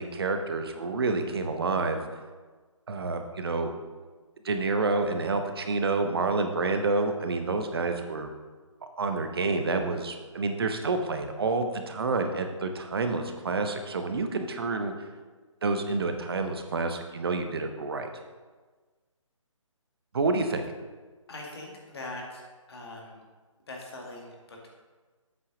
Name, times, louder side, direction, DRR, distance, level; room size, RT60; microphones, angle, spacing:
voice 1, 0.0-2.0 2.9-3.7 4.4-8.3 9.0-14.9 15.6-18.1 20.1-20.6, right 3 dB, 45° right, 6 dB, 0.9 m, -28 dB
voice 2, 21.3-23.2 23.7-24.7, left 2 dB, 50° left, -1 dB, 2.0 m, -42 dB
8.0 x 5.6 x 5.0 m, 1.4 s
figure-of-eight pair, 150°, 17 cm